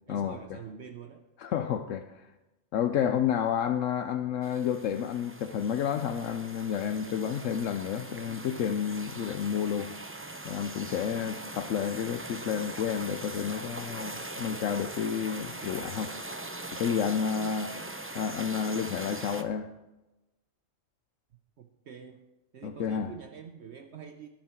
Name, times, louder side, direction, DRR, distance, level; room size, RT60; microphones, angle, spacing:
voice 1, 0.1-1.3 21.6-22.2 22.5-24.3, right 7 dB, 60° right, 6 dB, 1.0 m, -45 dB
voice 2, 1.4-2.3 2.7-9.9 10.4-16.1 16.7-17.8 18.1-19.7 22.6-23.1, left 8 dB, 75° left, 9 dB, 1.0 m, -30 dB
sound 1, 4.4-19.4, right 2 dB, 15° right, 0.5 m, -41 dB
20.5 x 7.4 x 4.5 m, 0.99 s
omnidirectional pair, 1.3 m